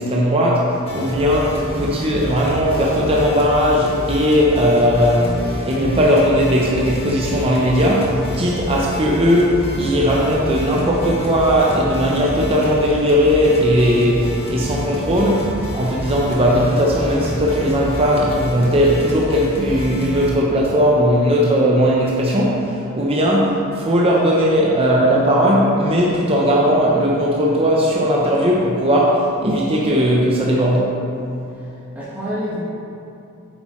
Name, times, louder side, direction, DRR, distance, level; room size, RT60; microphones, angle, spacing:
voice 1, 0.0-30.9, equal, 25° right, -3 dB, 0.7 m, -17 dB
sound 1, 0.8-20.3, left 1 dB, 30° left, 1.3 m, -28 dB
voice 2, 31.5-32.6, equal, 10° right, -11 dB, 1.5 m, -29 dB
8.5 x 7.3 x 3.1 m, 2.8 s
head